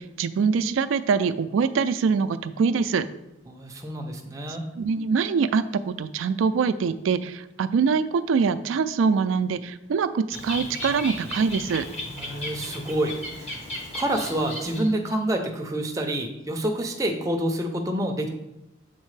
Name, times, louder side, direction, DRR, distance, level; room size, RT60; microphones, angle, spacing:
voice 1, 0.0-3.1 4.8-11.9, right 5 dB, 80° right, 12 dB, 0.3 m, -24 dB
voice 2, 3.5-4.7 12.1-13.6 13.9-18.3, right 1 dB, 15° right, 3 dB, 0.5 m, -28 dB
Bird, 10.3-15.1, left 1 dB, 30° left, 1.1 m, -35 dB
7.3 x 4.3 x 3.2 m, 0.89 s
head